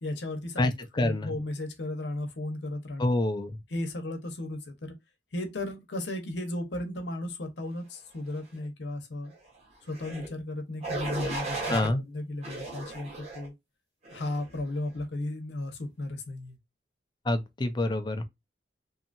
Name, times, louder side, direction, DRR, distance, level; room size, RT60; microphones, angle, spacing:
voice 1, 0.0-0.7 1.0-3.1 3.7-4.9 5.3-9.3 9.8-13.5 14.1-16.6, left 1 dB, 85° left, 0.8 m, -35 dB
voice 2, 0.6-1.3 3.0-3.6 11.7-12.0 17.3-18.2, left 1 dB, 25° left, 0.4 m, -27 dB
sound 1, 9.9-10.3 10.8-11.9 12.4-13.5 14.1-14.4, right 2 dB, 40° right, 1.1 m, -35 dB
2.7 x 2.4 x 2.5 m
head